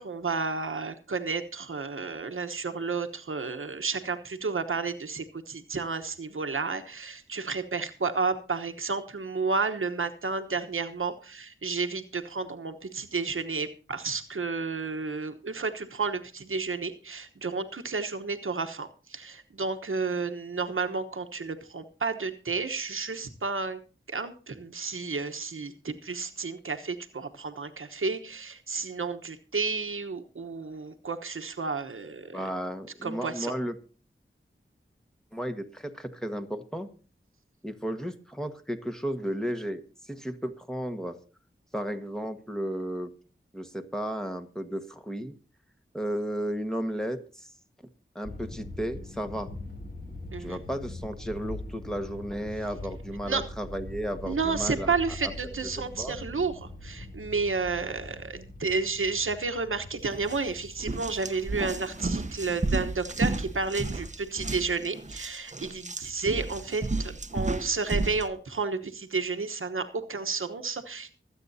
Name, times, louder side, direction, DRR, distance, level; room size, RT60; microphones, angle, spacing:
voice 1, 0.0-23.8 24.1-32.4 33.0-33.5 50.3-50.6 53.3-53.4 54.3-71.1, right 4 dB, 85° right, 7 dB, 1.1 m, -31 dB
voice 2, 32.3-33.8 35.3-36.9 37.6-41.2 41.7-43.1 43.5-45.3 45.9-47.5 48.1-49.5 50.4-54.9 55.2-55.7 56.0-56.2, equal, 5° left, 5 dB, 1.4 m, -34 dB
sound 1, 48.2-64.4, left 1 dB, 50° left, 3.7 m, -43 dB
sound 2, 60.1-60.4 60.8-68.3, right 2 dB, 35° right, 0.9 m, -32 dB
24.5 x 8.3 x 2.7 m, 0.36 s
wide cardioid pair, 55°, 21 cm